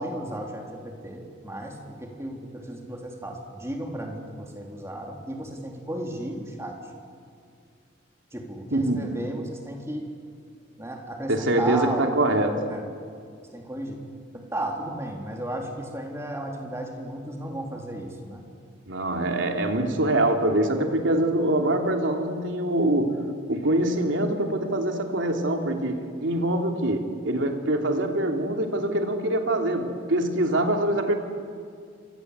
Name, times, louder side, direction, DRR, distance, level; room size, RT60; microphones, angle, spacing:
voice 1, 0.0-6.8 8.3-10.1 10.8-12.1 12.7-12.8 13.5-14.0 14.3-18.4, right 1 dB, 15° right, 1 dB, 3.5 m, -34 dB
voice 2, 8.7-9.0 11.3-12.7 18.9-23.2 23.5-31.1, right 1 dB, 75° right, 3 dB, 3.1 m, -24 dB
28.0 x 25.5 x 8.2 m, 2.3 s
head